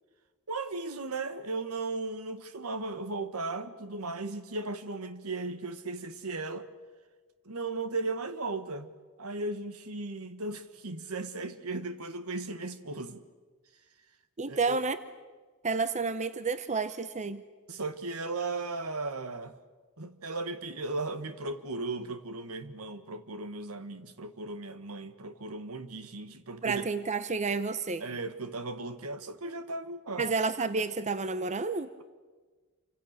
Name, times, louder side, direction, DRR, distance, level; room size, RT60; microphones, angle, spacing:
voice 1, 0.5-6.7 7.4-13.2 14.4-14.8 17.7-19.6 20.0-26.8 28.0-30.3, right 3 dB, 75° right, 1.6 m, -36 dB
voice 2, 14.4-15.0 15.6-17.4 26.6-28.0 30.2-31.9, right 4 dB, 35° right, 0.8 m, -30 dB
28.5 x 25.5 x 6.7 m
head